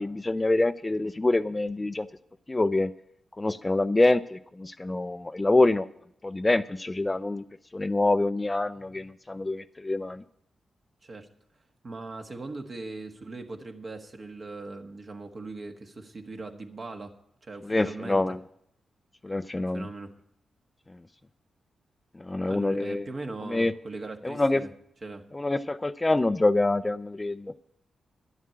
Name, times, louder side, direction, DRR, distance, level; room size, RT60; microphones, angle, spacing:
voice 1, 0.0-2.1 2.5-2.9 3.4-5.9 6.2-7.4 7.7-10.2 17.6-18.4 19.2-19.9 22.2-23.1 23.5-23.7 24.2-24.6 25.3-27.5, left 2 dB, 20° left, 13 dB, 0.4 m, -26 dB
voice 2, 11.8-17.1 17.4-18.3 19.7-20.2 22.5-24.7 25.0-25.2, right 3 dB, 50° right, 4 dB, 1.5 m, -40 dB
11.0 x 7.3 x 8.6 m, 0.72 s
cardioid pair, 65°, 0 cm